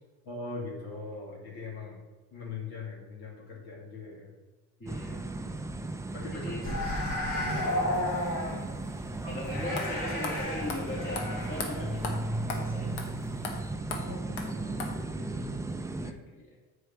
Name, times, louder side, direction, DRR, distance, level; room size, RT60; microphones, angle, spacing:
voice 1, 0.2-2.0 2.3-4.3 6.1-6.9 7.3-7.8 14.0-14.8 15.2-15.4 16.0-16.2, left 3 dB, 65° left, -4 dB, 2.6 m, -41 dB
voice 2, 4.8-5.2 6.3-6.6 9.3-12.1 12.5-13.1 16.3-16.6, left 1 dB, 30° left, -3 dB, 2.4 m, -38 dB
sound 1, 4.9-16.1, right 2 dB, 10° right, 0.4 m, -36 dB
sound 2, 6.6-13.2 13.5-13.7, left 1 dB, 45° left, 2.6 m, -33 dB
sound 3, 9.3-9.4 9.8-9.9 10.2-10.4 10.7-10.8 11.1-11.3 11.6-11.7 12.0-12.1 12.5-12.6 13.0-13.1 13.4-13.5 13.9-14.0 14.4-14.5 14.8-14.9, left 4 dB, 90° left, 1.2 m, -35 dB
7.7 x 4.8 x 4.5 m, 1.2 s
supercardioid pair, 85°, 40 cm